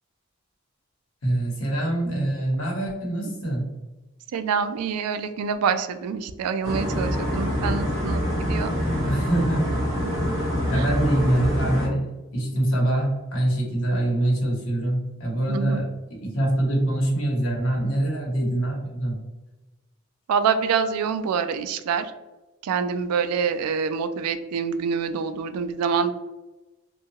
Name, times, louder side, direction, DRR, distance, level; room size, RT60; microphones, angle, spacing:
voice 1, 1.2-3.7 9.0-9.7 10.7-15.9 16.2-19.2, right 1 dB, 75° left, -2 dB, 1.0 m, -24 dB
voice 2, 4.3-8.7 10.7-10.8 15.5-15.8 20.3-22.1 22.6-26.1, right 6 dB, 90° right, 11 dB, 0.3 m, -26 dB
sound 1, 6.6-11.9, equal, 30° right, 1.3 m, -25 dB
2.8 x 2.3 x 2.7 m, 1.1 s
head